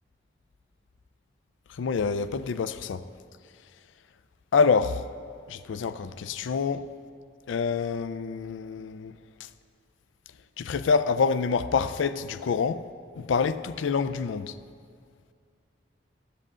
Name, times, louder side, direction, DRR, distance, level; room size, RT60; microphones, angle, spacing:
voice 1, 1.8-3.0 4.5-5.0 5.5-6.9 7.5-9.1 10.6-12.8 13.2-14.5, left 5 dB, 85° left, 0.4 m, -26 dB
14.5 x 7.7 x 3.7 m
head